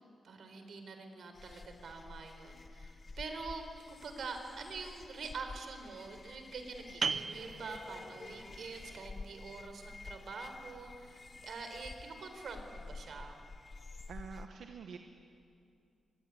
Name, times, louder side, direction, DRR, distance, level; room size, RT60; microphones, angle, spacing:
voice 1, 0.2-13.4, right 4 dB, 65° right, 6 dB, 4.2 m, -45 dB
sound 1, 1.3-14.5, left 3 dB, 30° left, 1.0 m, -50 dB
sound 2, 7.0-12.4, right 5 dB, 45° right, 0.6 m, -42 dB
voice 2, 14.1-15.0, right 6 dB, 80° right, 5 dB, 1.4 m, -46 dB
25.0 x 24.0 x 9.9 m, 2.5 s
wide cardioid pair, 120°, 0 cm